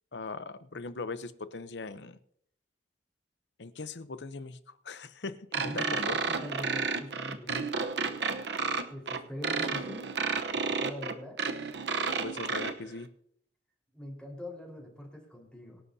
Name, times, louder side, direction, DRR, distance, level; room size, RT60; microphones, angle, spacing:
voice 1, 0.1-2.2 3.6-4.6 4.8-6.2 7.4-7.7 12.2-13.1, left 3 dB, 80° left, 13 dB, 0.8 m, -40 dB
sound 1, 5.5-12.7, right 4 dB, 70° right, 1.0 m, -31 dB
voice 2, 5.6-6.0 6.3-7.5 8.9-10.1 10.5-11.4 13.9-15.8, equal, 5° left, -2 dB, 4.5 m, -42 dB
24.5 x 11.0 x 2.8 m, 0.69 s
head